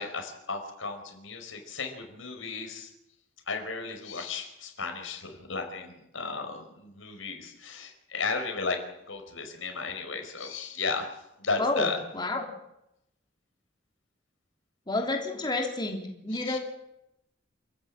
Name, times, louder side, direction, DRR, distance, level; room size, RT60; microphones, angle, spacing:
voice 1, 0.0-2.9 3.5-8.8 9.1-11.1 11.4-12.0 16.3-16.6, left 4 dB, 90° left, 5 dB, 4.8 m, -34 dB
voice 2, 14.9-16.6, left 2 dB, 25° left, 2 dB, 3.2 m, -29 dB
28.0 x 14.0 x 8.9 m, 0.85 s
head